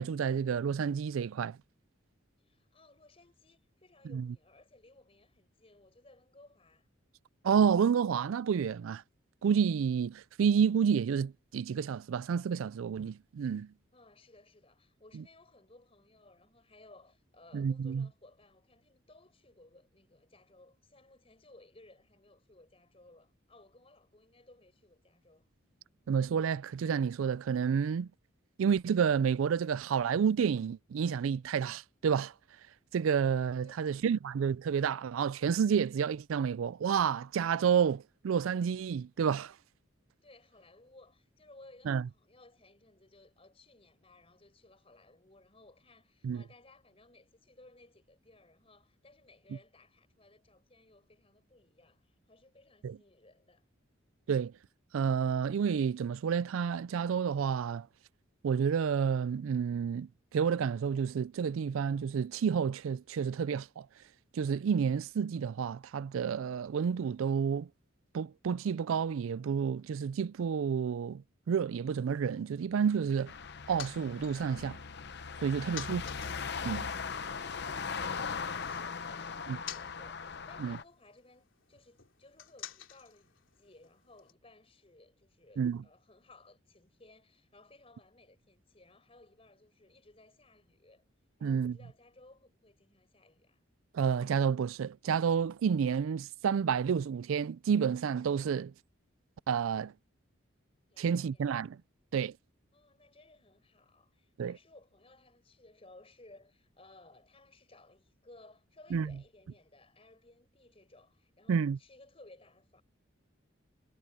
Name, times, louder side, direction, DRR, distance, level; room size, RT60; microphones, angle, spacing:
voice 1, 0.0-1.6 4.1-4.3 7.4-9.0 9.4-13.7 17.5-18.1 26.1-28.1 28.6-32.3 32.9-39.5 41.9-42.0 46.2-46.4 52.8-53.0 54.3-54.5 54.9-57.9 58.4-63.9 64.3-67.7 68.1-73.3 73.7-74.8 75.4-76.0 76.6-76.9 79.5-79.6 80.6-80.8 85.6-85.8 91.4-91.8 93.9-98.7 99.5-99.9 101.0-101.8 102.1-102.3 104.4-104.6 108.9-109.1 111.5-111.8, right 7 dB, 80° right, 0.4 m, -30 dB
voice 2, 2.4-6.9 13.9-25.5 33.4-34.0 40.2-53.7 77.1-91.1 91.4-93.6 100.9-101.5 102.7-112.8, left 2 dB, 30° left, 5.1 m, -60 dB
sound 1, 73.3-77.9 78.2-84.3, left 10 dB, 70° left, 3.1 m, -51 dB
sound 2, 73.3-80.8, left 5 dB, 55° left, 0.8 m, -39 dB
head